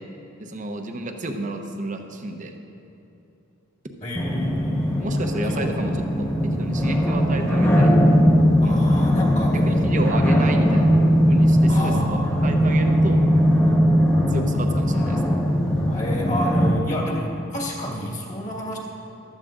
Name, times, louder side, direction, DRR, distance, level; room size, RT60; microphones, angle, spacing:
voice 1, 0.4-2.5 5.0-5.9 6.2-7.9 8.6-8.9 9.7-10.9 11.3-13.2 14.3-15.4, right 2 dB, 40° right, 4 dB, 0.8 m, -31 dB
voice 2, 4.0-5.2 5.5-5.7 8.6-9.9 11.7-12.5 15.9-18.8, equal, 40° left, -3 dB, 1.8 m, -30 dB
sound 1, 4.1-16.7, equal, 15° left, 1.4 m, -19 dB
14.5 x 12.5 x 2.5 m, 2.8 s
head